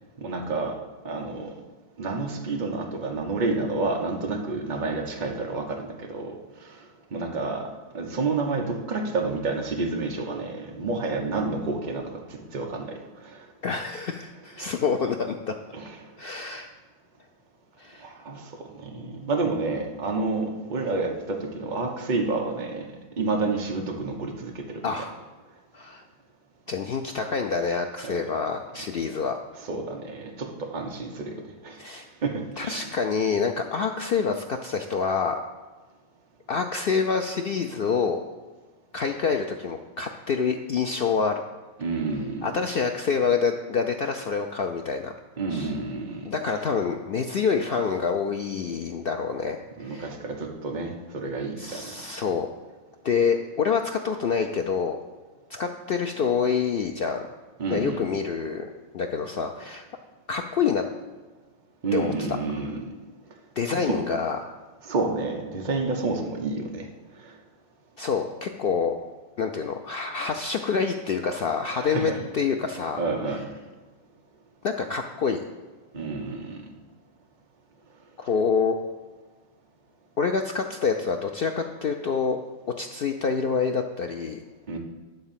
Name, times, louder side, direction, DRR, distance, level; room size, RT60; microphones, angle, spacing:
voice 1, 0.2-0.7 1.0-1.5 2.0-6.3 6.6-6.8 7.1-7.7 7.9-13.0 13.2-13.5 14.6-14.7 15.7-16.0 18.0-22.9 23.2-24.9 28.0-28.2 29.6-31.3 31.6-31.8 32.2-32.9 41.8-42.5 45.4-46.3 49.8-51.9 57.6-58.0 61.8-62.9 63.7-64.0 64.8-66.9 67.2-67.3 71.7-72.2 73.0-73.5 75.9-76.6 84.7-84.8, right 3 dB, 35° right, 1 dB, 1.1 m, -29 dB
voice 2, 13.6-15.5 16.2-16.7 17.8-18.1 24.8-25.1 25.7-26.0 26.7-29.4 31.8-32.1 32.6-35.4 36.5-38.2 38.9-41.4 42.4-45.1 45.5-45.7 46.2-50.1 51.6-52.5 53.0-55.0 55.5-57.3 57.7-58.7 58.9-59.9 60.3-60.8 61.9-62.1 63.6-64.6 68.0-69.0 69.4-73.0 74.6-75.4 78.2-78.8 80.2-82.4 82.8-84.4, left 5 dB, 75° left, 4 dB, 0.5 m, -27 dB
10.5 x 3.9 x 7.3 m, 1.3 s
omnidirectional pair, 1.6 m